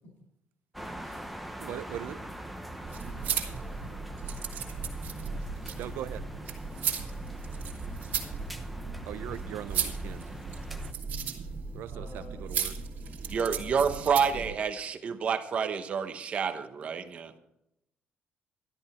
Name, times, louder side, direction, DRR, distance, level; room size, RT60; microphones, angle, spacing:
sound 1, 0.7-10.9, right 1 dB, ahead, 0.8 m, -43 dB
voice 1, 1.6-2.2 5.7-6.3 9.1-10.3 11.7-12.8, right 11 dB, 70° right, 12 dB, 0.8 m, -40 dB
sound 2, 2.8-14.5, right 6 dB, 55° right, 2.3 m, -36 dB
voice 2, 11.9-12.4 13.4-13.8 14.3-14.4 17.3-17.4, left 1 dB, 60° left, -2 dB, 5.4 m, -48 dB
voice 3, 13.3-17.3, right 6 dB, 35° right, 9 dB, 1.0 m, -29 dB
13.0 x 11.5 x 4.4 m, 0.83 s
cardioid pair, 175°, 4 cm